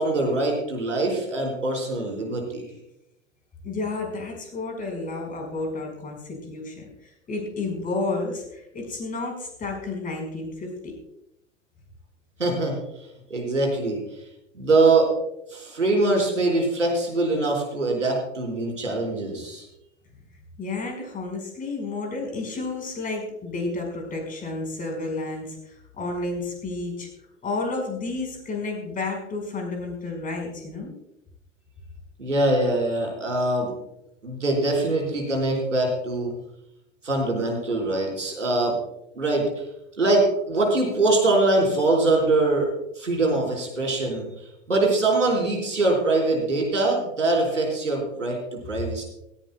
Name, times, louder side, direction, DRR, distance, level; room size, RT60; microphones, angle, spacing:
voice 1, 0.0-2.7 12.4-12.8 13.3-14.0 14.5-15.1 15.5-19.6 32.2-33.7 34.2-36.3 37.0-38.8 39.1-39.4 40.0-42.7 43.0-44.3 44.7-49.0, right 2 dB, 80° right, 0 dB, 4.5 m, -23 dB
voice 2, 3.6-6.9 7.3-10.9 20.6-27.1 27.4-30.9, left 3 dB, 20° left, 2 dB, 4.8 m, -31 dB
17.0 x 16.5 x 2.2 m, 0.84 s
figure-of-eight pair, 90°, 37 cm